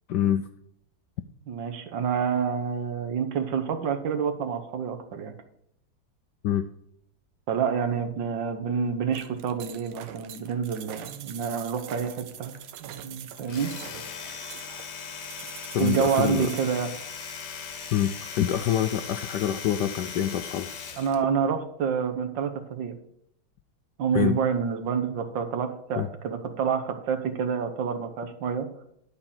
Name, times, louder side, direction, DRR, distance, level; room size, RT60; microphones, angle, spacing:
voice 1, 0.1-0.5 6.4-6.7 15.7-16.5 17.9-20.7 24.1-24.4 26.0-26.1, left 10 dB, 80° left, 8 dB, 0.9 m, -26 dB
voice 2, 1.5-5.3 7.5-13.7 15.8-16.9 21.0-23.0 24.0-28.7, right 7 dB, 65° right, 7 dB, 1.7 m, -28 dB
sound 1, 9.1-16.6, right 11 dB, 80° right, 1.6 m, -44 dB
Domestic sounds home sounds, 13.4-21.2, left 6 dB, 60° left, 1.5 m, -38 dB
11.5 x 4.6 x 7.3 m, 0.73 s
omnidirectional pair, 2.4 m